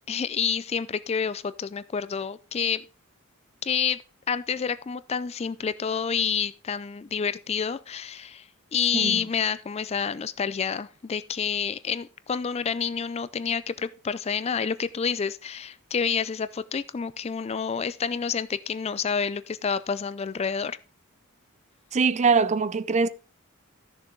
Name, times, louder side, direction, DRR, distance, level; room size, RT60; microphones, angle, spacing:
voice 1, 0.1-2.8 3.6-4.0 4.3-20.8, left 6 dB, 30° left, 0.4 m, -28 dB
voice 2, 21.9-23.1, right 4 dB, 30° right, 0.4 m, -22 dB
13.5 x 6.7 x 3.8 m
head